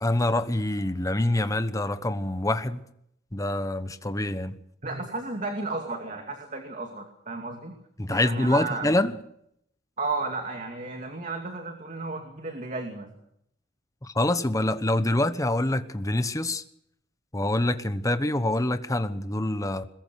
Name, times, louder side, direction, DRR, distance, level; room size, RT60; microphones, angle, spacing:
voice 1, 0.0-2.8 3.3-4.6 8.0-9.1 14.0-16.6 17.3-19.9, left 1 dB, 20° left, 1.1 m, -26 dB
voice 2, 4.8-7.7 8.1-8.9 10.0-13.2, right 3 dB, 45° right, 2.5 m, -33 dB
21.5 x 21.5 x 6.4 m
head